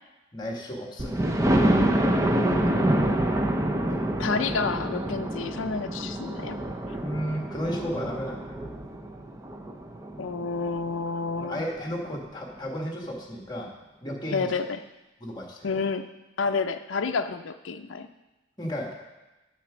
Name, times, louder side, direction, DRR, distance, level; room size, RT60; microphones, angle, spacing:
voice 1, 0.3-1.2 7.0-8.7 11.4-13.7 14.0-14.5 15.2-15.8 18.6-18.9, equal, 20° left, 0 dB, 1.5 m, -33 dB
Thunder, 1.0-10.7 11.3-11.4 11.8-11.9 12.1-12.2, right 1 dB, 15° right, 0.5 m, -26 dB
voice 2, 2.3-3.3 4.2-6.6 10.2-11.6 14.3-14.8 15.6-16.1 16.4-18.1, left 4 dB, 70° left, 7 dB, 0.5 m, -30 dB
7.5 x 7.4 x 6.1 m, 1.1 s
head